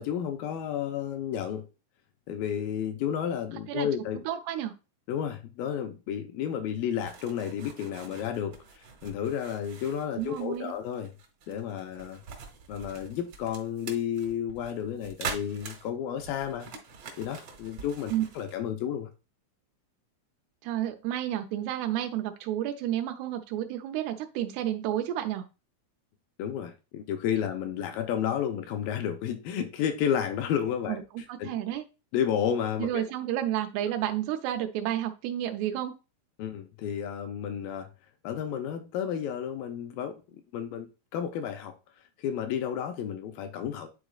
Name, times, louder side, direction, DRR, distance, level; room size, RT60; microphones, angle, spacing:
voice 1, 0.0-1.6 2.3-4.2 5.1-8.6 9.0-11.1 11.5-12.2 12.7-16.7 17.2-19.1 26.4-31.0 31.4-31.5 32.1-33.0 36.4-37.9 38.2-40.2 40.5-41.7 42.2-43.9, left 9 dB, 80° left, 2.2 m, -31 dB
voice 2, 4.3-4.7 10.2-10.7 18.1-18.2 20.6-25.4 30.9-31.0 31.3-31.8 32.8-35.9, right 12 dB, 85° right, 2.7 m, -31 dB
sound 1, 7.0-18.6, right 5 dB, 70° right, 1.5 m, -44 dB
10.5 x 4.0 x 2.4 m
omnidirectional pair, 4.5 m